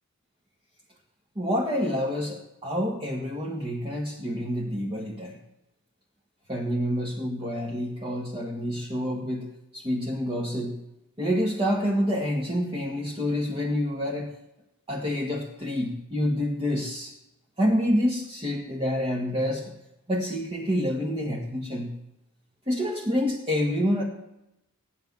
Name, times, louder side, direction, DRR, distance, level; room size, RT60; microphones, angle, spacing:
voice 1, 1.4-5.4 6.5-10.8 11.2-14.3 14.9-17.1 17.6-19.7 20.1-22.0 22.7-24.0, equal, 25° right, -3 dB, 2.0 m, -28 dB
15.0 x 9.7 x 7.3 m, 0.85 s
head